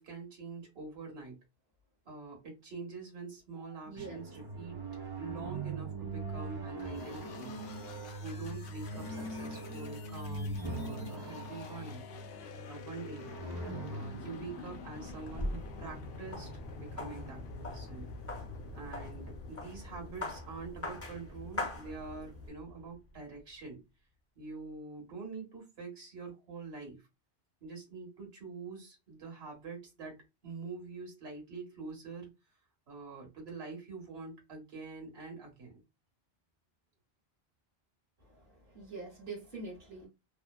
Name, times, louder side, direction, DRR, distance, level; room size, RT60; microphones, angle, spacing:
voice 1, 0.0-1.4 2.0-4.8 5.2-7.6 8.2-12.0 12.4-13.3 13.9-16.5 16.7-18.1 18.7-23.8 24.4-27.1 27.6-32.3 32.9-35.8, right 4 dB, 75° right, 1.3 m, -45 dB
voice 2, 3.9-4.2 38.3-40.1, right 3 dB, 60° right, 1.2 m, -44 dB
sound 1, 4.0-15.6, right 2 dB, 35° right, 0.4 m, -41 dB
sound 2, 6.8-23.4, left 3 dB, 70° left, 0.8 m, -48 dB
sound 3, 14.9-22.5, left 2 dB, 20° left, 0.5 m, -43 dB
2.7 x 2.1 x 2.2 m
omnidirectional pair, 1.0 m